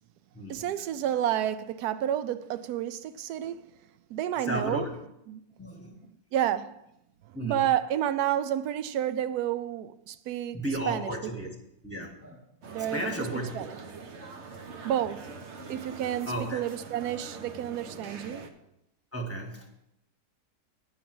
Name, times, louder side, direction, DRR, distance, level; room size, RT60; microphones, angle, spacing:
voice 1, 0.5-3.6 4.1-4.9 5.3-5.4 6.3-6.8 7.4-10.6 10.9-11.1 12.7-13.1 13.5-13.7 14.8-15.3 15.7-18.5, right 11 dB, 80° right, 1.1 m, -30 dB
voice 2, 4.4-4.9 5.6-5.9 7.3-7.6 10.5-11.5 11.8-12.4 12.8-13.7 16.2-16.6 17.5-17.6 17.9-18.1 19.1-19.7, right 1 dB, 10° left, 1.4 m, -34 dB
sound 1, 12.6-18.5, right 4 dB, 50° right, 1.0 m, -43 dB
10.0 x 4.7 x 7.6 m
omnidirectional pair, 1.7 m